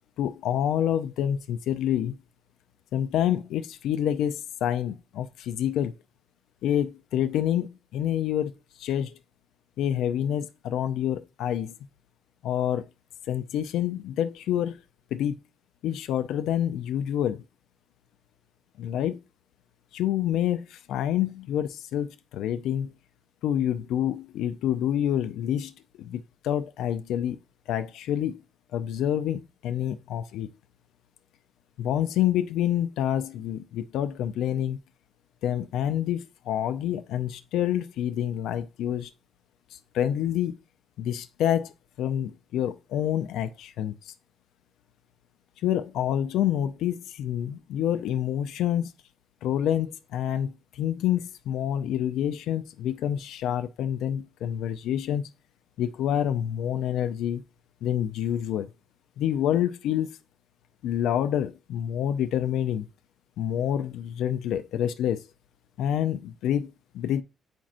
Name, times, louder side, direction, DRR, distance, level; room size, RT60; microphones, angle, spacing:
voice 1, 0.2-2.2 2.9-5.9 6.6-8.5 8.8-9.2 9.8-11.7 12.4-12.9 13.3-14.8 15.1-15.4 15.8-17.4 18.8-19.2 19.9-22.9 23.4-25.7 26.0-27.4 27.7-28.4 28.7-30.5 31.8-34.8 35.4-39.1 39.7-40.5 41.0-41.7 42.0-44.1 45.6-48.9 49.4-55.3 55.8-57.4 57.8-58.7 59.2-60.2 60.8-62.9 63.4-65.2 65.8-67.2, left 10 dB, 85° left, 0.4 m, -27 dB
7.3 x 5.2 x 2.5 m
cardioid pair, 165°, 0 cm